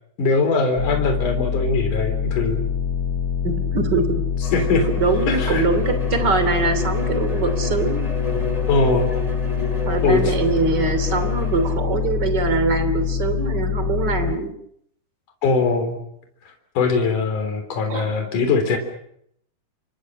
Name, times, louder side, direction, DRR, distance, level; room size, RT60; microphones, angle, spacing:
voice 1, 0.2-2.7 4.5-4.9 5.3-5.6 8.7-9.1 10.0-10.3 15.4-16.0 16.7-18.8, left 3 dB, 60° left, 6 dB, 4.9 m, -21 dB
sound 1, 0.8-14.4, left 7 dB, 75° left, 1.3 m, -25 dB
voice 2, 3.4-4.1 5.0-8.1 9.8-14.5 17.9-18.1, right 4 dB, 30° right, 9 dB, 3.1 m, -23 dB
Bowed string instrument, 4.4-11.8, left 2 dB, 10° left, 2.7 m, -31 dB
29.0 x 24.0 x 6.4 m, 0.71 s
omnidirectional pair, 4.3 m